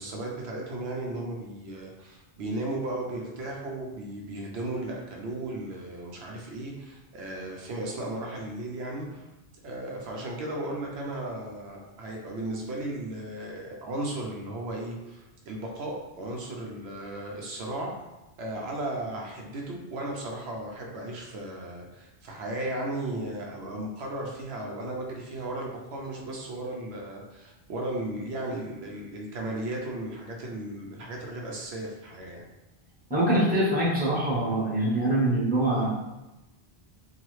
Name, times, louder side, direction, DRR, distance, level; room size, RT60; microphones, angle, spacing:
voice 1, 0.0-9.3 9.6-17.9 18.4-32.5, right 1 dB, 85° right, -1 dB, 0.9 m, -35 dB
voice 2, 33.1-35.9, right 1 dB, 10° right, -8 dB, 0.8 m, -24 dB
2.9 x 2.3 x 3.0 m, 1.0 s
omnidirectional pair, 1.0 m